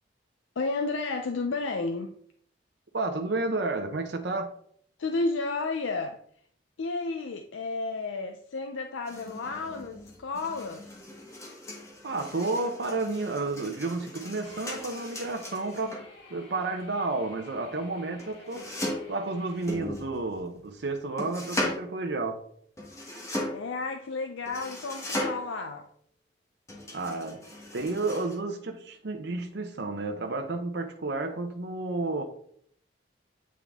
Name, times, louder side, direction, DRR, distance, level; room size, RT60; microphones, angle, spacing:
voice 1, 0.6-2.1 5.0-6.2 6.8-11.0 23.5-25.9, left 3 dB, 85° left, 0.5 m, -32 dB
voice 2, 2.9-4.5 12.0-16.0 16.3-18.7 19.1-22.4 26.9-27.4 27.7-32.2, right 3 dB, 60° right, 0.6 m, -31 dB
sound 1, 9.1-16.1 18.2-19.2 19.6-20.6 21.2-21.9 22.8-23.7 24.5-25.6 26.7-28.4, left 1 dB, 15° left, 1.5 m, -37 dB
sound 2, 14.4-19.7, left 2 dB, 65° left, 2.5 m, -52 dB
8.4 x 3.7 x 3.5 m
head